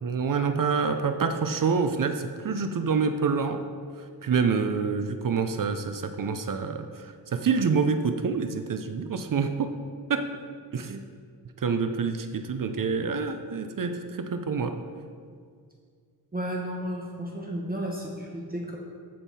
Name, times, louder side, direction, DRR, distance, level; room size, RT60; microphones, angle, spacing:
voice 1, 0.0-3.6 4.2-9.7 10.1-10.4 10.7-11.0 11.6-14.8, right 5 dB, 60° right, 8 dB, 0.6 m, -27 dB
voice 2, 16.3-18.8, equal, 25° right, -2 dB, 1.0 m, -33 dB
14.5 x 5.5 x 4.2 m, 2.1 s
wide cardioid pair, 155°, 38 cm